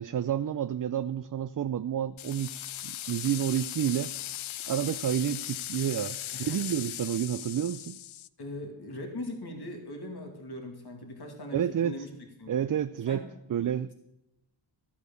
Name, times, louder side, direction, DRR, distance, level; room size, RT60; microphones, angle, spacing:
voice 1, 0.0-4.1 4.7-8.0 11.5-12.0 12.5-13.2 13.5-13.9, right 9 dB, 45° right, 13 dB, 0.4 m, -30 dB
sound 1, 2.2-8.3, left 13 dB, 80° left, 0.5 m, -38 dB
voice 2, 8.4-12.1 12.4-12.7 13.1-13.3, left 1 dB, 50° left, 2 dB, 2.6 m, -40 dB
13.5 x 8.4 x 7.0 m, 0.92 s
cardioid pair, 60°, 48 cm